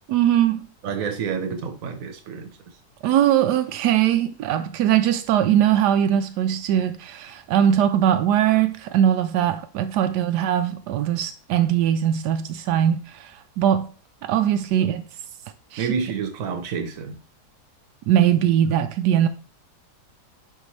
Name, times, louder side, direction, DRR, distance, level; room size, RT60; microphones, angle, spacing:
voice 1, 0.1-0.6 3.0-13.0 13.6-13.9 14.2-15.0 15.7-15.8 18.1-19.3, right 10 dB, 85° right, 1.2 m, -20 dB
voice 2, 0.8-2.5 14.8-14.9 15.8-17.2, right 6 dB, 60° right, 1.3 m, -29 dB
10.0 x 4.4 x 3.2 m
omnidirectional pair, 1.7 m